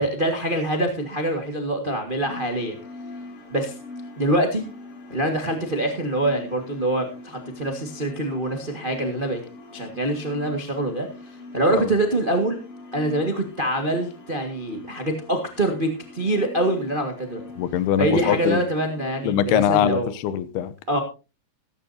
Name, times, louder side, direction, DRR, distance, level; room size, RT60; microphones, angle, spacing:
voice 1, 0.0-2.8 3.5-3.7 4.2-4.6 5.1-9.4 9.7-11.1 11.5-12.6 12.9-17.4 18.0-20.1 20.9-21.0, right 1 dB, 90° right, 0.4 m, -24 dB
sound 1, 2.2-19.4, left 2 dB, 65° left, 4.7 m, -42 dB
voice 2, 17.6-18.6 19.2-20.7, left 10 dB, 90° left, 2.9 m, -22 dB
15.5 x 14.5 x 2.8 m
omnidirectional pair, 4.4 m